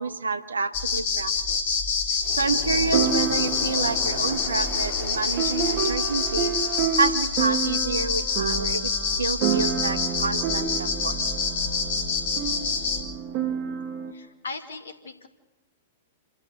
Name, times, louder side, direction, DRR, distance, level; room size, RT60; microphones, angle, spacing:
voice 1, 0.0-1.8 2.3-6.5 7.0-8.9 9.2-11.2, right 4 dB, 80° right, 11 dB, 1.2 m, -28 dB
sound 1, 0.7-13.0, left 5 dB, 50° left, 3.3 m, -27 dB
sound 2, 1.4-1.5 2.9-14.1, right 7 dB, 40° right, 1.9 m, -30 dB
Waves surf, 2.2-7.7, left 5 dB, 35° left, 3.1 m, -40 dB
voice 2, 14.1-15.3, left 3 dB, 75° left, 6 dB, 2.4 m, -38 dB
27.5 x 13.5 x 8.1 m, 1.1 s
figure-of-eight pair, 105°, 0 cm